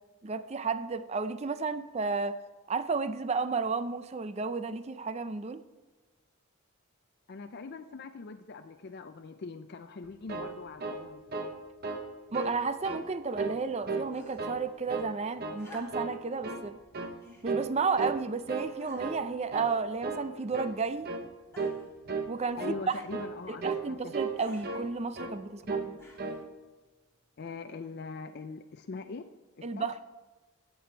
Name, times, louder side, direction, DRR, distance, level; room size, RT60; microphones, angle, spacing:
voice 1, 0.2-2.4 2.7-5.6 12.3-16.7 17.4-21.1 22.3-22.8 23.6-26.0 29.6-29.9, right 4 dB, 30° right, 12 dB, 0.4 m, -32 dB
voice 2, 7.3-11.2 22.6-24.2 27.4-29.3 29.6-29.9, left 4 dB, 50° left, 7 dB, 0.4 m, -42 dB
sound 1, 10.0-11.6 11.8-12.1 12.3-13.0 13.3-14.1 14.4-15.1 15.4-15.6 15.9-16.7 16.9-17.2 17.4-17.7 18.0-18.7 19.0-19.2 19.5-19.7 20.0-20.3 20.5-20.8 21.0-21.3 21.6-21.8 22.1-22.3 22.6-22.8 23.1-23.3 23.6-23.9 24.1-24.9 25.1-25.4 25.6-25.9 26.2-26.4, right 4 dB, 45° right, 0.9 m, -35 dB
sound 2, 14.1-14.6 15.6-16.2 17.2-17.5 18.2-18.3 18.8-19.2 20.1-20.6 21.5-21.9 22.9-23.1 24.4-24.7 26.0-26.4 27.5-27.6, left 2 dB, 15° left, 2.7 m, -53 dB
16.0 x 6.9 x 4.4 m, 1.3 s
head